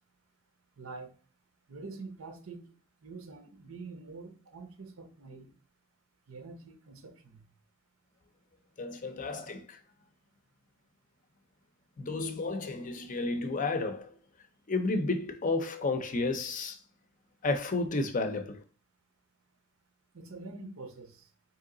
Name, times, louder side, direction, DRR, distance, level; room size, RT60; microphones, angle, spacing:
voice 1, 0.8-1.1 1.7-2.7 3.0-5.5 6.3-7.4 20.1-21.3, right 3 dB, 85° right, 0.9 m, -46 dB
voice 2, 8.8-9.8 12.0-14.2 14.7-16.8 17.4-18.6, left 3 dB, 40° left, 0.5 m, -32 dB
3.7 x 3.0 x 3.8 m
head